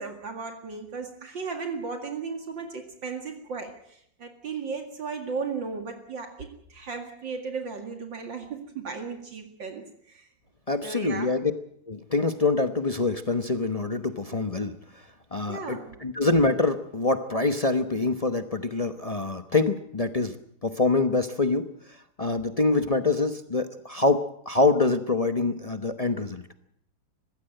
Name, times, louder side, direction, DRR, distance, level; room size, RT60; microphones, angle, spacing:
voice 1, 0.0-10.2 10.8-11.3 15.5-16.1, right 4 dB, 60° right, 5 dB, 2.7 m, -35 dB
voice 2, 10.7-11.5 11.9-14.7 15.3-20.4 20.6-26.4, left 3 dB, 40° left, 8 dB, 0.5 m, -25 dB
20.5 x 16.0 x 8.9 m, 0.70 s
omnidirectional pair, 2.4 m